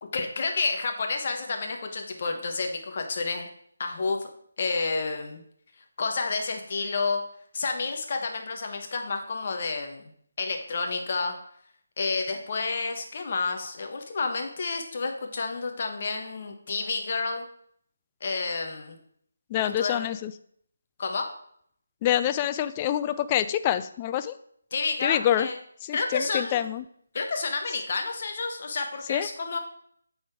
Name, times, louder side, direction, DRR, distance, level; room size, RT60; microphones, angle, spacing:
voice 1, 0.0-3.5 3.8-4.3 4.6-5.4 6.0-7.2 7.5-10.1 10.4-11.3 12.0-17.4 18.2-19.0 19.8-20.0 21.0-21.3 24.7-25.6 25.9-26.6 27.1-29.6, left 4 dB, 45° left, 4 dB, 1.2 m, -30 dB
voice 2, 19.5-20.3 22.0-24.4 25.0-25.5 25.8-26.8 29.1-29.3, left 11 dB, 25° left, 12 dB, 0.4 m, -26 dB
8.6 x 4.1 x 4.7 m, 0.65 s
figure-of-eight pair, 155°, 0 cm